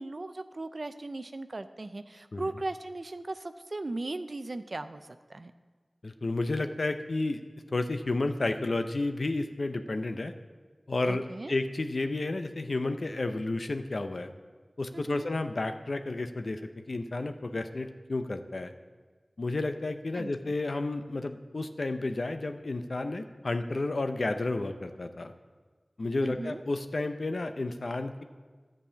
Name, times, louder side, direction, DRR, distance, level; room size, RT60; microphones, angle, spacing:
voice 1, 0.0-5.5 11.1-11.5 14.9-15.3 20.1-20.3 26.2-26.6, right 2 dB, 60° right, 10 dB, 0.5 m, -37 dB
voice 2, 6.0-7.4 7.7-10.3 10.9-14.3 14.8-18.7 19.4-25.3 26.0-28.2, left 2 dB, 70° left, 8 dB, 0.7 m, -31 dB
12.0 x 5.4 x 8.4 m, 1.4 s
wide cardioid pair, 50°, 0 cm